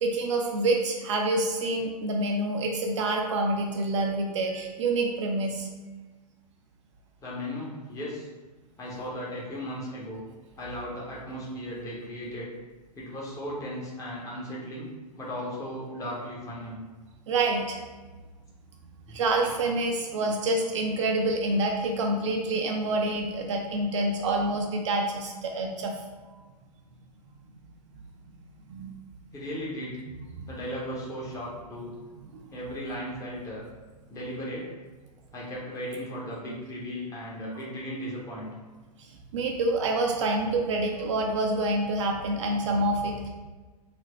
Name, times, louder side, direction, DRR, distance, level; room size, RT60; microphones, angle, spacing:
voice 1, 0.0-5.7 17.3-17.8 19.1-26.0 28.7-28.9 30.3-30.4 32.3-32.4 39.0-43.3, right 2 dB, 50° right, 1 dB, 0.4 m, -27 dB
voice 2, 7.2-8.3 8.8-10.2 10.6-12.5 12.9-14.9 15.2-16.8 19.1-19.2 29.3-30.0 30.5-32.0 32.5-33.6 34.1-34.7 35.3-38.5, equal, 15° left, -5 dB, 0.7 m, -36 dB
4.1 x 2.0 x 3.0 m, 1.3 s
figure-of-eight pair, 100°, 20 cm